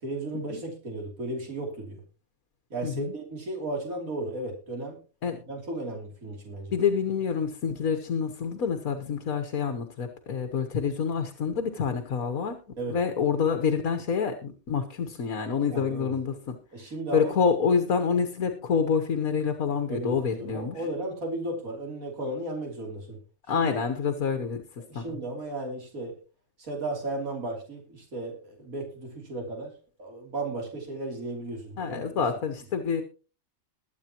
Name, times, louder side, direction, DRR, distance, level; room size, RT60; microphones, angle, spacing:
voice 1, 0.0-2.0 2.7-5.0 5.5-6.7 12.8-13.0 15.7-16.1 16.7-17.3 19.9-23.2 23.5-23.7 24.8-26.1 26.6-29.7 30.0-32.2, right 2 dB, 75° right, 1 dB, 3.6 m, -35 dB
voice 2, 2.8-3.1 5.2-5.4 6.7-12.6 12.9-16.6 17.1-20.8 23.5-24.6 24.9-25.0 31.8-33.0, left 6 dB, 75° left, 7 dB, 1.7 m, -27 dB
22.0 x 8.4 x 3.0 m, 0.35 s
omnidirectional pair, 1.5 m